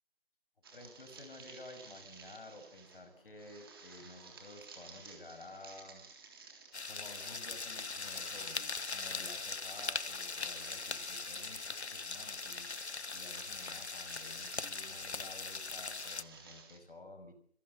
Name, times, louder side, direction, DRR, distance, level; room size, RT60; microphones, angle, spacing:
sound 1, 0.6-16.8, right 4 dB, 20° right, 3.5 m, -56 dB
voice 1, 0.7-6.0 6.9-17.3, left 2 dB, 55° left, 8 dB, 6.5 m, -53 dB
sound 2, 6.7-16.2, left 4 dB, 80° left, 1.3 m, -40 dB
26.0 x 22.5 x 7.1 m, 0.64 s
figure-of-eight pair, 165°, 33 cm